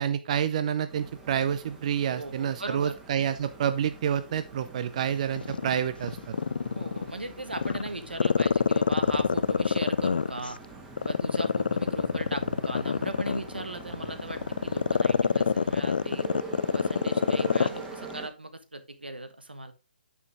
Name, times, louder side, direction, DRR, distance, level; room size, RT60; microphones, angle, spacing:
voice 1, 0.0-6.3, right 9 dB, 45° right, 11 dB, 0.7 m, -28 dB
sound 1, 0.9-18.3, right 3 dB, 10° right, 1.7 m, -44 dB
voice 2, 2.1-2.9 6.7-10.6 11.0-16.3 16.7-19.7, right 2 dB, 90° right, 9 dB, 1.4 m, -38 dB
Growling, 5.4-7.1 7.5-10.5 11.0-17.8 18.1-18.2, left 5 dB, 70° left, 0.3 m, -25 dB
9.3 x 5.6 x 3.6 m, 0.31 s
figure-of-eight pair, 135°, 5 cm